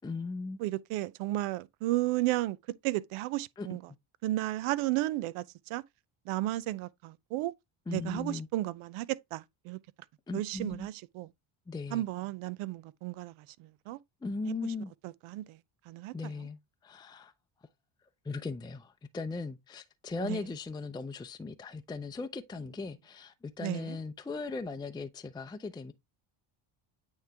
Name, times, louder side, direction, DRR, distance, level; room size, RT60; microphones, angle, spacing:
voice 1, 0.0-0.6 3.6-3.7 7.9-8.5 10.3-10.9 11.7-12.0 14.2-14.9 16.1-17.3 18.2-25.9, left 4 dB, 10° left, 0.5 m, -38 dB
voice 2, 0.6-2.6 2.8-3.8 4.2-5.8 6.3-7.5 7.9-9.8 10.3-11.3 11.9-13.3 13.6-14.0 15.0-15.6 15.9-16.1 20.2-20.4 23.6-24.0, right 17 dB, 80° right, 0.7 m, -33 dB
8.9 x 3.2 x 3.4 m
cardioid pair, 95°, 50 cm